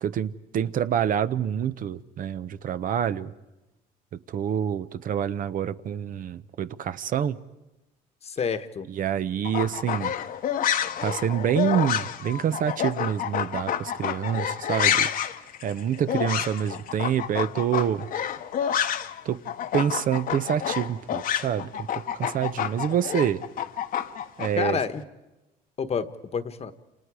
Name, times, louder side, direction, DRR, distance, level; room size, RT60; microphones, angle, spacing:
voice 1, 0.0-3.3 4.3-7.4 8.9-10.1 11.0-15.1 15.6-18.1 19.2-19.4 19.7-23.4 24.4-24.8, right 9 dB, 55° right, 13 dB, 0.8 m, -27 dB
voice 2, 8.2-8.9 24.6-25.0 25.8-26.7, left 6 dB, 40° left, 11 dB, 1.2 m, -29 dB
sound 1, 9.4-19.2 19.5-24.5, left 9 dB, 55° left, 1.1 m, -28 dB
29.5 x 27.5 x 4.9 m, 1.0 s
cardioid pair, 110°, 17 cm